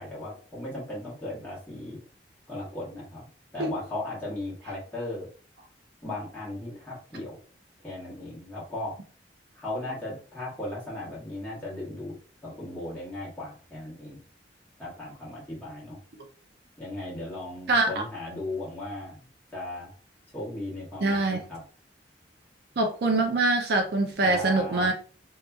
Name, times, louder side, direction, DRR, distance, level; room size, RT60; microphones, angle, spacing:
voice 1, 0.0-2.0 2.5-3.3 3.5-5.3 6.0-7.4 7.8-8.9 9.5-12.1 12.4-14.2 14.8-16.0 16.8-19.9 20.3-21.6 24.2-24.9, left 2 dB, 10° left, -7 dB, 1.3 m, -37 dB
voice 2, 21.0-21.4 22.8-24.9, right 2 dB, 65° right, 3 dB, 0.5 m, -24 dB
2.8 x 2.3 x 2.3 m, 0.41 s
head